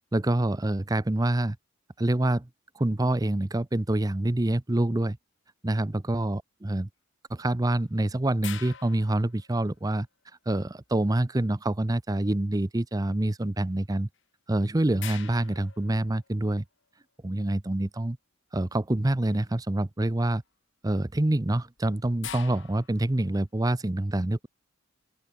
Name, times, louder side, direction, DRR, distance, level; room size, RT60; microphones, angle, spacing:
voice 1, 0.1-1.6 2.0-2.5 2.8-5.2 5.6-6.9 7.3-10.1 10.5-14.1 14.5-16.6 17.2-18.2 18.5-20.4 20.8-24.5, right 1 dB, 15° right, 0.6 m, -26 dB
sound 1, 8.4-10.0 14.1-14.2 15.0-16.6 19.2-19.6 20.1-20.5 21.3-23.3, left 10 dB, 60° left, 1.8 m, -44 dB
open air
head